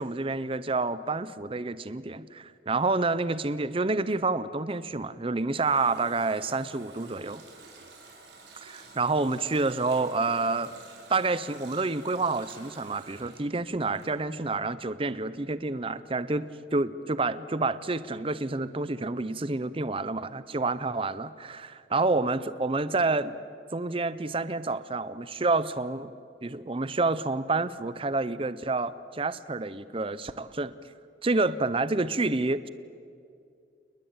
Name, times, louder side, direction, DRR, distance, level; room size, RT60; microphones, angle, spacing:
voice 1, 0.0-7.4 8.6-10.7 11.1-23.4 23.7-26.1 26.4-30.7 31.2-32.7, right 3 dB, 30° right, 15 dB, 0.7 m, -28 dB
Water tap faucet, 5.0-14.6 14.9-15.0, right 3 dB, 75° right, 6.1 m, -51 dB
29.5 x 20.5 x 9.0 m, 2.4 s
head